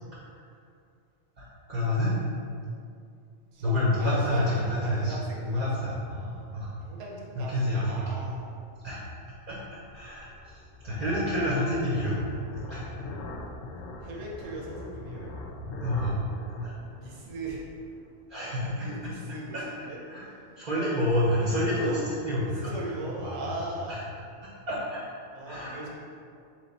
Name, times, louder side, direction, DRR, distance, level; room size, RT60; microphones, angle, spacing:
voice 1, 1.4-2.1 3.6-5.1 5.4-6.2 6.5-6.7 7.3-8.2 8.8-9.0 9.5-9.6 9.9-10.3 10.8-12.2 12.7-12.8 15.8-16.2 16.6-16.7 18.3-18.8 19.5-20.2 20.6-22.7 23.2-23.5 23.9-24.0 24.7-25.0 25.4-25.9, left 1 dB, 45° right, -8 dB, 0.7 m, -28 dB
voice 2, 3.5-6.4 6.8-8.4 14.0-15.4 16.9-17.6 18.8-20.4 20.7-21.1 21.5-22.1 22.4-24.0 25.3-25.9, right 2 dB, 80° right, -3 dB, 1.1 m, -39 dB
sound 1, 8.6-18.1, left 2 dB, 90° left, 1.0 m, -42 dB
3.4 x 3.0 x 4.0 m, 2.4 s
omnidirectional pair, 1.3 m